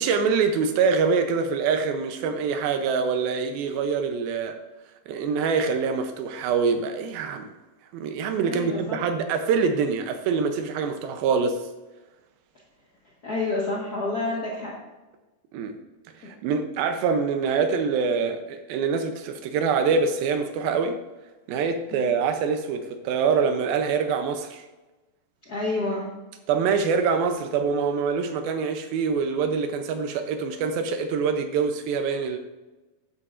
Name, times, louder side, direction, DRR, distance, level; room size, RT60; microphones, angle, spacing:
voice 1, 0.0-4.5 5.1-7.4 7.9-11.6 15.5-15.7 16.2-21.0 21.5-24.7 26.5-32.4, right 5 dB, 80° right, 7 dB, 2.5 m, -25 dB
voice 2, 8.4-9.0 13.2-14.7 16.2-16.3 21.9-22.1 25.4-26.1, left 2 dB, 70° left, -5 dB, 0.9 m, -29 dB
11.5 x 8.8 x 2.5 m, 1.1 s
omnidirectional pair, 4.2 m